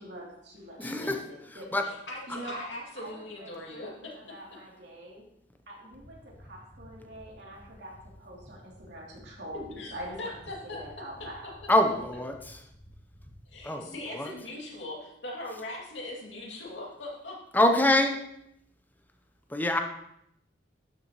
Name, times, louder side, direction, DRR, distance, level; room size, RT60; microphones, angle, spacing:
voice 1, 0.0-1.8 2.3-2.7 3.0-5.2 5.7-10.4 10.6-11.6, right 1 dB, 65° right, -4 dB, 2.9 m, -44 dB
voice 2, 0.8-1.2 1.7-1.8 11.7-12.3 13.6-14.3 17.5-18.1 19.5-19.8, left 1 dB, 10° left, 5 dB, 0.7 m, -24 dB
voice 3, 1.8-4.1 9.8-10.8 13.5-17.4, left 2 dB, 90° left, -2 dB, 2.5 m, -40 dB
sound 1, 5.9-13.6, equal, 30° left, 1.6 m, -52 dB
12.0 x 6.9 x 3.1 m, 0.77 s
head